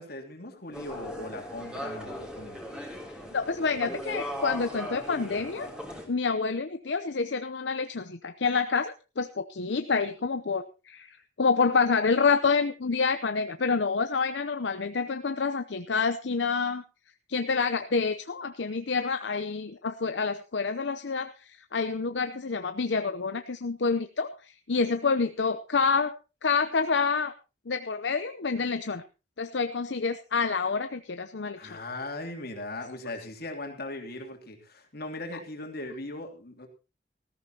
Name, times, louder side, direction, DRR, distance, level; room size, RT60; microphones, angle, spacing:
voice 1, 0.0-2.6 31.6-36.7, left 2 dB, 60° left, 3 dB, 2.9 m, -39 dB
sound 1, 0.7-6.1, equal, 5° right, 3.1 m, -38 dB
voice 2, 3.3-5.7 6.1-16.8 17.3-26.1 26.4-27.3 27.7-29.0 29.4-31.6, left 4 dB, 75° left, 9 dB, 0.7 m, -28 dB
19.5 x 14.0 x 2.9 m, 0.30 s
head